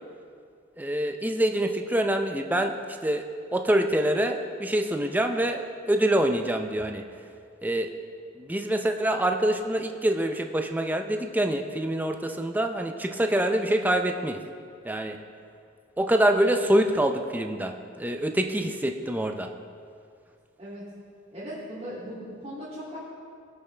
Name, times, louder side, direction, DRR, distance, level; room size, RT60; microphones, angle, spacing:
voice 1, 0.8-3.3 3.5-7.3 7.6-7.9 8.3-14.4 14.8-15.2 16.0-19.5, right 1 dB, 10° right, 5 dB, 0.5 m, -25 dB
voice 2, 21.3-23.0, equal, 30° right, -13 dB, 2.5 m, -38 dB
19.5 x 7.0 x 3.3 m, 2.3 s
head